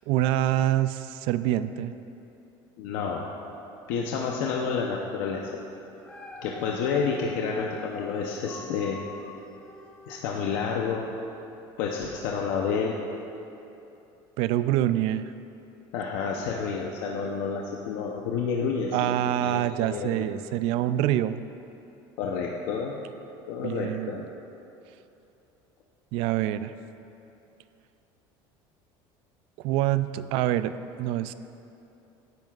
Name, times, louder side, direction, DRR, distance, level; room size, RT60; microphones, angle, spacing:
voice 1, 0.1-1.9 14.4-15.3 18.9-21.4 23.6-24.2 26.1-26.7 29.6-31.3, right 13 dB, 65° right, 13 dB, 0.4 m, -26 dB
voice 2, 2.8-3.3 3.9-5.6 6.4-9.0 10.1-11.1 11.8-13.0 15.9-20.3 22.2-23.0 23.5-24.2, left 5 dB, 80° left, -1 dB, 0.8 m, -29 dB
Dog, 5.8-11.2 11.7-11.8, left 2 dB, 10° left, 0.8 m, -45 dB
16.5 x 10.5 x 2.4 m, 2.9 s
cardioid pair, 165°, 10 cm